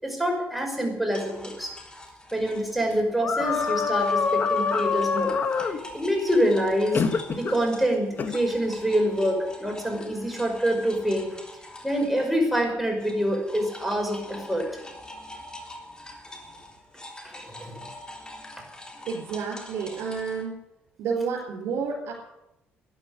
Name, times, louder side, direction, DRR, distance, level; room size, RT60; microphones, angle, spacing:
voice 1, 0.0-1.7 2.3-5.4 5.6-7.0 7.3-11.3 11.8-14.7 17.2-17.8, equal, ahead, 1 dB, 5.8 m, -26 dB
sound 1, 1.1-12.7 13.0-20.4, left 1 dB, 20° left, 3.5 m, -44 dB
sound 2, 3.2-5.8 6.9-7.6 8.2-8.4, left 5 dB, 45° left, 1.4 m, -25 dB
voice 2, 19.1-20.6 21.0-22.1, right 5 dB, 75° right, -2 dB, 4.2 m, -30 dB
13.0 x 10.5 x 9.8 m, 0.92 s
cardioid pair, 90°, 4 cm